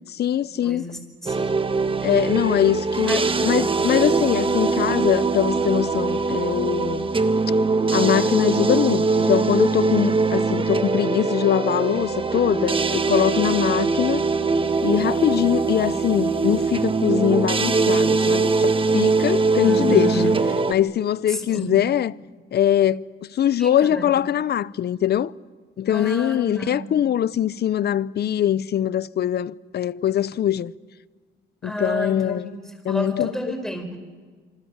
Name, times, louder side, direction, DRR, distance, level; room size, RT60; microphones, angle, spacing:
voice 1, 0.1-0.8 2.0-7.1 7.9-14.3 14.8-20.2 20.7-22.1 22.5-25.3 25.8-30.7 31.6-32.5 32.8-33.3, left 10 dB, 55° left, 0.7 m, -22 dB
voice 2, 0.6-1.4 3.1-3.3 3.6-3.7 19.6-20.4 21.3-21.7 23.6-24.1 25.9-26.9 31.6-32.6 32.9-34.0, equal, ahead, 5.3 m, -30 dB
sound 1, 1.3-20.7, right 4 dB, 25° right, 1.5 m, -22 dB
27.5 x 26.0 x 7.3 m
cardioid pair, 90°, 20 cm